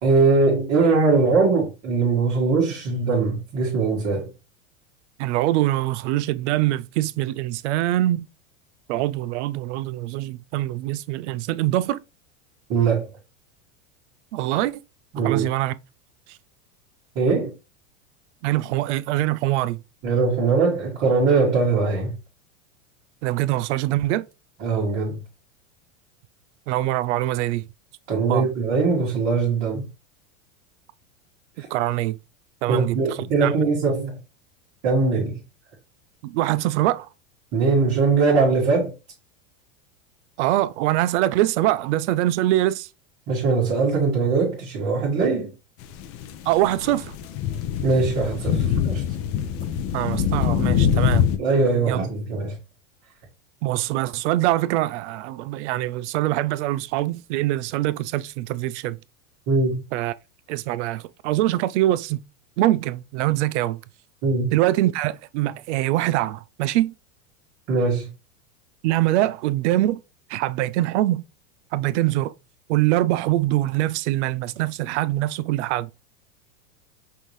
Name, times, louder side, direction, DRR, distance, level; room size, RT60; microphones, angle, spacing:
voice 1, 0.0-4.3 12.7-13.1 15.1-15.5 17.1-17.5 20.0-22.1 24.6-25.2 28.1-29.9 32.7-34.2 34.8-35.4 37.5-38.9 43.3-45.5 47.8-49.0 51.4-52.6 59.5-59.8 64.2-64.5 67.7-68.1, right 4 dB, 40° right, 1.5 m, -21 dB
voice 2, 5.2-8.3 8.9-12.0 14.3-14.8 15.2-15.7 16.3-16.4 18.4-19.8 23.2-24.3 26.7-27.6 28.3-28.5 31.7-32.2 32.6-33.5 36.2-37.1 40.4-42.9 46.5-47.1 49.9-51.3 51.9-52.0 53.6-59.0 59.9-60.1 60.5-62.2 62.6-63.8 64.5-66.9 68.8-70.0 70.3-71.2 71.7-72.3 72.7-75.9, right 15 dB, 65° right, 0.5 m, -23 dB
sound 1, 45.8-51.4, left 8 dB, 35° left, 0.6 m, -24 dB
5.6 x 2.7 x 3.1 m
supercardioid pair, 130°, 39 cm